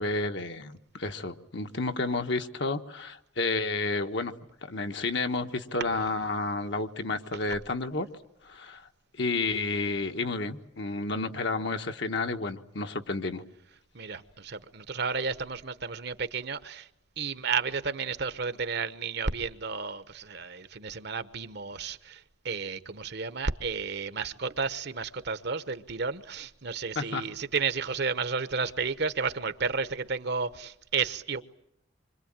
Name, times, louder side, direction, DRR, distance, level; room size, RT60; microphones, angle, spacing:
voice 1, 0.0-4.3 4.6-8.1 8.4-8.9 9.2-13.4 26.9-27.2, left 3 dB, 60° left, 1.4 m, -31 dB
voice 2, 13.9-16.9 17.2-31.4, right 5 dB, 55° right, 1.1 m, -32 dB
26.5 x 24.5 x 8.9 m
head